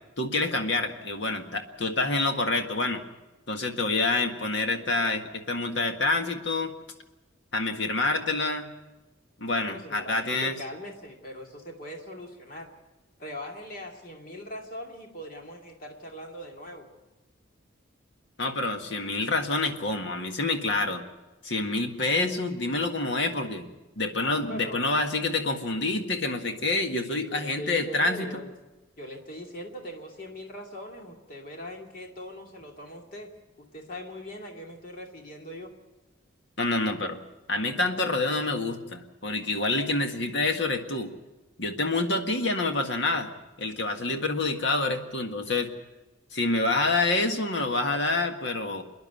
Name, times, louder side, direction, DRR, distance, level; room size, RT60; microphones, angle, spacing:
voice 1, 0.2-3.0 3.5-6.7 7.5-8.7 9.4-10.6 18.4-21.0 21.4-23.7 24.0-28.4 36.6-37.2 37.5-41.1 41.6-43.3 43.6-45.7 46.3-48.8, left 2 dB, 65° left, 5 dB, 1.7 m, -27 dB
voice 2, 9.6-12.7 13.2-16.9 24.2-24.8 27.3-28.5 29.0-33.3 33.6-35.7, equal, 45° left, 1 dB, 2.5 m, -41 dB
27.0 x 10.5 x 9.2 m, 1.1 s
head